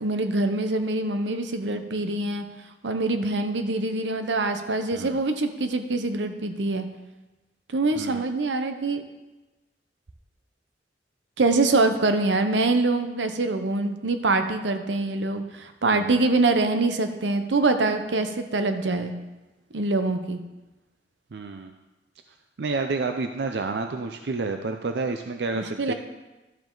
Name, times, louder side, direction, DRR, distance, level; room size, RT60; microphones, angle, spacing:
voice 1, 0.0-2.4 2.8-6.9 7.7-9.0 11.4-19.1 19.7-20.4 25.5-25.9, right 2 dB, 90° right, 8 dB, 0.9 m, -24 dB
voice 2, 7.9-8.3 15.9-16.1 21.3-21.8 22.6-25.9, right 3 dB, 65° right, 6 dB, 0.5 m, -29 dB
12.0 x 7.3 x 3.9 m, 1.1 s
head